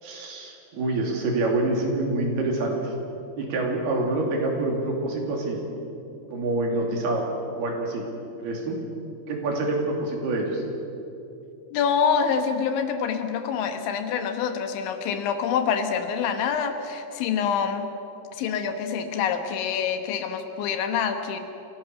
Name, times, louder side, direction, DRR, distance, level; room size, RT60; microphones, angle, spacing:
voice 1, 0.0-2.8 3.4-5.6 6.3-7.3 7.6-8.0 8.4-8.8 9.3-10.6, right 2 dB, 60° right, 0 dB, 4.5 m, -26 dB
voice 2, 11.7-17.9 18.4-21.4, left 7 dB, 80° left, 7 dB, 3.6 m, -26 dB
26.0 x 16.5 x 6.7 m, 2.8 s
omnidirectional pair, 5.3 m